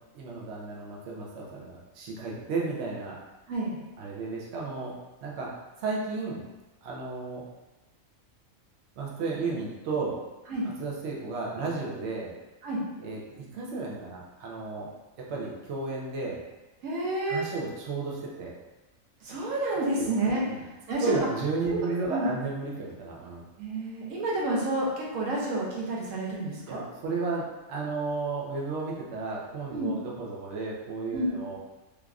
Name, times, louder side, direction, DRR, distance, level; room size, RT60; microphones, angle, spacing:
voice 1, 0.1-3.2 4.0-4.9 5.2-5.5 5.8-6.4 6.8-7.4 9.0-10.2 10.8-12.3 13.0-14.9 15.2-16.4 17.3-18.5 20.0-20.1 20.5-20.6 21.0-23.4 26.7-31.6, right 3 dB, 65° right, -3 dB, 0.8 m, -33 dB
voice 2, 16.8-17.5 19.2-20.4 20.9-21.3 21.7-22.3 23.6-26.8 29.7-30.0 31.1-31.3, right 2 dB, 80° right, -4 dB, 1.1 m, -29 dB
3.2 x 2.4 x 2.3 m, 1.1 s
omnidirectional pair, 1.4 m